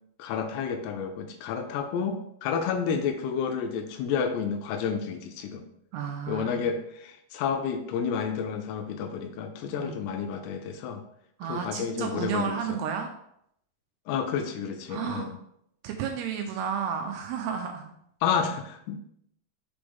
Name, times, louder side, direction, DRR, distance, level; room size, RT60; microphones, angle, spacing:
voice 1, 0.2-5.7 6.3-11.0 11.5-12.8 14.1-15.4 18.2-19.0, left 6 dB, 85° left, 6 dB, 2.6 m, -30 dB
voice 2, 5.9-6.6 9.8-9.9 11.4-13.1 14.9-15.3 15.8-17.9, right 7 dB, 80° right, 4 dB, 2.4 m, -32 dB
6.0 x 5.1 x 3.5 m, 0.73 s
omnidirectional pair, 5.1 m